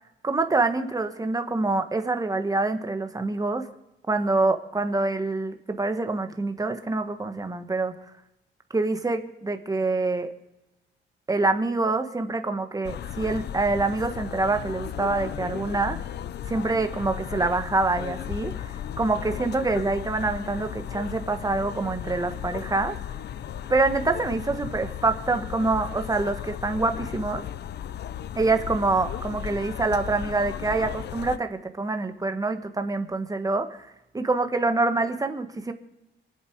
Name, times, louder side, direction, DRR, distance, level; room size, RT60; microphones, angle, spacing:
voice 1, 0.2-3.7 4.1-7.9 8.7-10.3 11.3-16.0 16.5-22.9 23.7-27.4 28.3-33.9 34.1-35.7, right 3 dB, 15° right, 7 dB, 1.4 m, -26 dB
sound 1, 12.8-31.4, left 10 dB, 60° left, 0.7 m, -35 dB
23.5 x 7.9 x 4.8 m, 0.93 s
cardioid pair, 90°, 20 cm